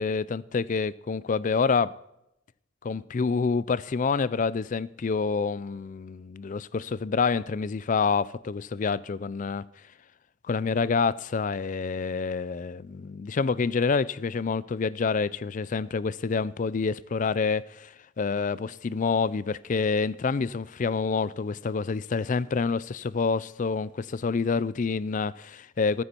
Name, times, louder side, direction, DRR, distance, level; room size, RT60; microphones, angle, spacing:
voice 1, 0.0-2.0 2.8-9.6 10.5-26.0, left 5 dB, 40° left, 0.4 m, -27 dB
14.0 x 14.0 x 4.4 m
head